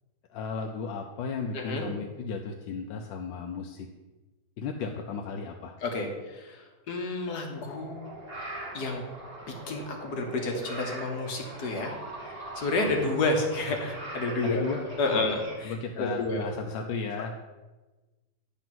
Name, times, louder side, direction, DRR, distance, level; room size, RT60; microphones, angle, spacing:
voice 1, 0.3-3.9 4.6-5.7 14.4-15.3 15.6-17.3, left 5 dB, 80° left, 3 dB, 1.3 m, -34 dB
voice 2, 1.5-1.9 5.8-6.6 6.9-8.0 8.7-9.0 9.7-11.9 12.2-14.6 15.0-16.5, left 2 dB, 65° left, 2 dB, 1.4 m, -30 dB
sound 1, 7.5-15.5, right 1 dB, 30° right, 3.0 m, -41 dB
9.2 x 3.5 x 5.9 m, 1.2 s
omnidirectional pair, 2.0 m